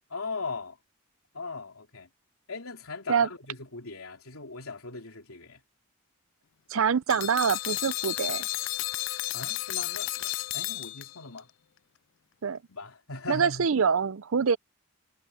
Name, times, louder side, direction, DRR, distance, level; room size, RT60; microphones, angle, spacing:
voice 1, 0.1-0.8 1.3-2.1 2.5-5.6 9.3-11.5 12.7-13.7, left 3 dB, 85° left, 3.2 m, -39 dB
voice 2, 6.7-8.5 12.4-12.6 13.3-14.6, right 6 dB, 70° right, 0.5 m, -25 dB
sound 1, 7.1-11.4, left 18 dB, 55° left, 0.3 m, -32 dB
head